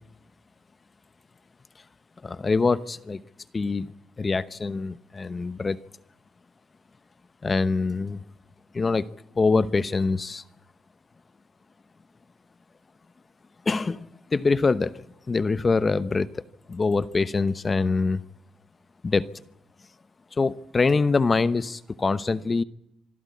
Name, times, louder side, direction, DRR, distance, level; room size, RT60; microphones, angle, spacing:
voice 1, 2.2-3.2 3.5-3.9 4.2-5.8 7.4-8.2 8.7-9.1 9.4-10.4 13.7-15.0 15.3-16.4 16.7-18.2 19.0-19.3 20.4-22.6, left 4 dB, 30° left, 15 dB, 1.0 m, -24 dB
26.0 x 12.5 x 9.5 m, 0.81 s
cardioid pair, 90°, 0 cm